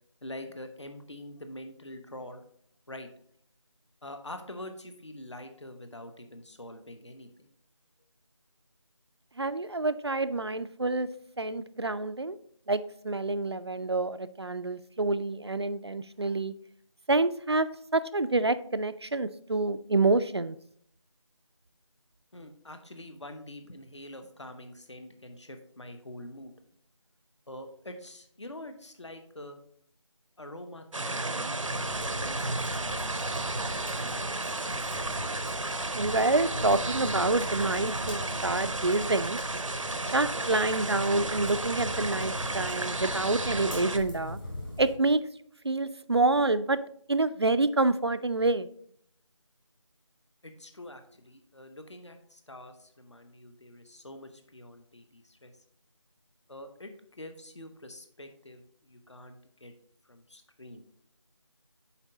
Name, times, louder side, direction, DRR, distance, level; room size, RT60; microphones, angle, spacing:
voice 1, 0.2-2.4 2.9-3.1 4.0-7.5 22.3-26.5 27.5-29.6 30.4-31.6 31.9-33.3 33.6-33.9 50.4-55.5 56.5-59.7 60.1-60.8, left 1 dB, 65° left, 7 dB, 1.1 m, -45 dB
voice 2, 9.4-11.1 11.4-12.4 12.7-16.5 17.1-20.6 35.9-39.4 40.1-44.4 44.8-45.2 45.6-46.8 47.1-48.7, right 2 dB, 55° right, 14 dB, 0.4 m, -27 dB
sound 1, 30.9-44.0, right 2 dB, 90° right, 0.7 m, -33 dB
sound 2, 31.6-44.9, left 1 dB, 40° left, 2.2 m, -40 dB
7.3 x 4.7 x 3.9 m, 0.64 s
figure-of-eight pair, 180°, 16 cm